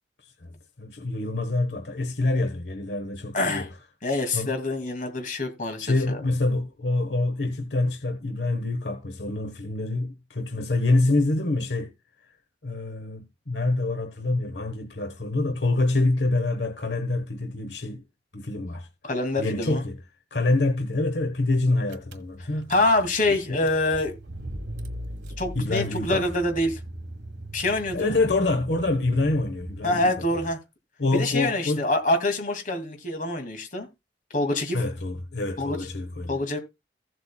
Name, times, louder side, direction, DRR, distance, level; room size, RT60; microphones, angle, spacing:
voice 1, 0.2-3.7 4.3-4.5 5.8-11.9 12.6-18.0 18.3-18.9 19.4-20.0 20.3-22.7 23.5-23.6 25.5-26.2 27.9-30.1 31.0-31.8 34.7-36.4, left 2 dB, 75° left, 1.2 m, -26 dB
voice 2, 3.3-3.7 4.0-6.2 19.0-19.8 22.7-24.2 25.4-26.8 27.5-28.1 29.8-30.6 31.1-33.9 34.3-34.8 35.6-35.8 36.3-36.6, left 2 dB, 45° left, 2.4 m, -25 dB
Car / Engine, 21.6-21.7 21.9-30.3, right 1 dB, 75° right, 1.4 m, -40 dB
16.0 x 7.8 x 2.3 m
head